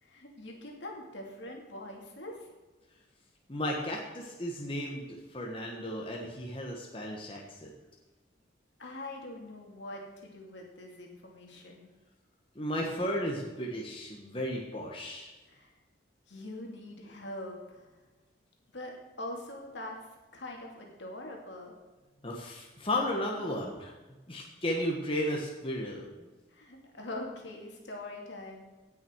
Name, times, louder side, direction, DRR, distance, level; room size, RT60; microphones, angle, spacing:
voice 1, 0.0-2.5 8.8-11.9 15.5-15.7 16.3-18.0 18.7-20.0 20.3-21.7 26.5-28.7, left 1 dB, 65° left, 0 dB, 2.6 m, -43 dB
voice 2, 3.5-7.7 12.5-15.3 22.2-23.9 24.3-26.3, left 1 dB, 30° left, -1 dB, 1.4 m, -34 dB
17.5 x 6.4 x 4.7 m, 1.2 s
head